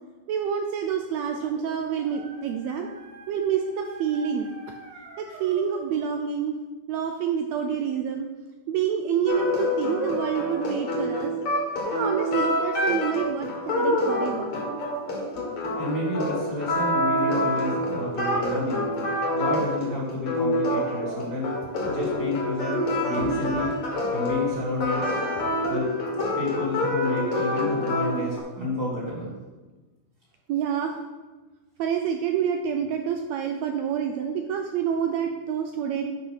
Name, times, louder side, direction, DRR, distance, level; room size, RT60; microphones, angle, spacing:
voice 1, 0.3-2.9 3.3-4.5 5.2-6.6 6.9-8.3 8.7-11.3 11.8-14.5 18.1-18.3 19.2-19.3 30.5-31.0 31.8-36.1, right 8 dB, 80° right, 5 dB, 1.6 m, -27 dB
Dog, 1.0-6.1, right 3 dB, 55° right, 1.9 m, -46 dB
sound 1, 9.3-28.4, left 1 dB, 50° left, 2.7 m, -27 dB
voice 2, 15.7-18.8 19.3-21.5 21.8-23.7 24.1-25.0 25.7-25.9 26.4-29.3 32.7-32.8 34.2-34.3, left 1 dB, 40° right, -5 dB, 3.1 m, -30 dB
10.0 x 5.5 x 5.8 m, 1.2 s
omnidirectional pair, 3.7 m